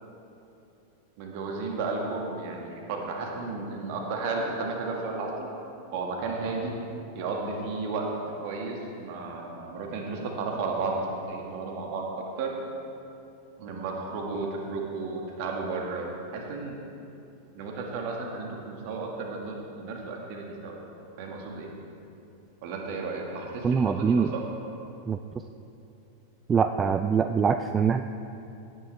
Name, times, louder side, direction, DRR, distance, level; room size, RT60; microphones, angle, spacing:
voice 1, 1.2-5.5 5.9-6.7 7.1-8.1 8.4-12.5 13.6-16.8 17.5-20.8 21.2-21.7 22.6-24.4, right 3 dB, 45° right, 0 dB, 1.8 m, -33 dB
voice 2, 23.6-24.3 25.1-25.2 26.5-28.0, right 6 dB, 20° right, 9 dB, 0.3 m, -23 dB
17.0 x 9.6 x 3.4 m, 2.8 s
figure-of-eight pair, 90°, 0 cm